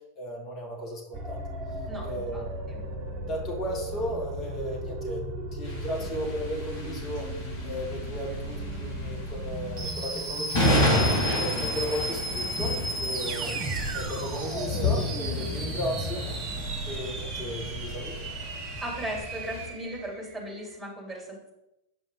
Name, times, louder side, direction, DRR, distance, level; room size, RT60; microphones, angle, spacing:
voice 1, 0.2-1.4 2.0-7.3 7.6-13.7 13.9-18.3, equal, 30° left, -1 dB, 2.0 m, -36 dB
sound 1, 1.1-20.5, right 1 dB, 40° right, 1.0 m, -35 dB
voice 2, 1.9-2.8 18.8-21.5, right 1 dB, 5° right, -2 dB, 2.7 m, -37 dB
sound 2, 5.6-19.7, left 1 dB, 50° left, 2.4 m, -31 dB
7.7 x 5.2 x 3.8 m, 0.88 s
figure-of-eight pair, 90°, 0 cm